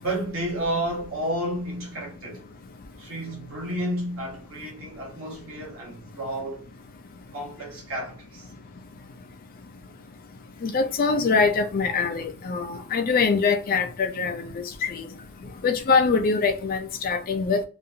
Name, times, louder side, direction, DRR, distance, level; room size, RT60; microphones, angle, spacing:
voice 1, 0.0-2.4 3.0-6.6 7.3-8.5, right 1 dB, 65° right, 1.2 m, -31 dB
voice 2, 10.6-15.1 15.6-17.6, left 4 dB, 40° left, 0.4 m, -23 dB
2.7 x 2.4 x 2.6 m
head